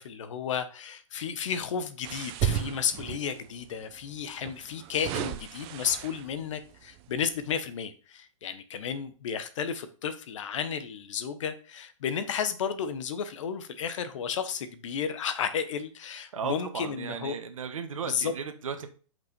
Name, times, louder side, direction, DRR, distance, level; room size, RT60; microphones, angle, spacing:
voice 1, 0.0-17.4 18.1-18.3, left 7 dB, 65° left, 1.2 m, -33 dB
sound 1, 2.0-3.4 4.4-6.4 7.0-7.2, right 10 dB, 35° right, 0.8 m, -33 dB
voice 2, 16.3-18.9, right 6 dB, 80° right, 1.3 m, -35 dB
5.8 x 5.5 x 5.3 m
hypercardioid pair, 130°, 17 cm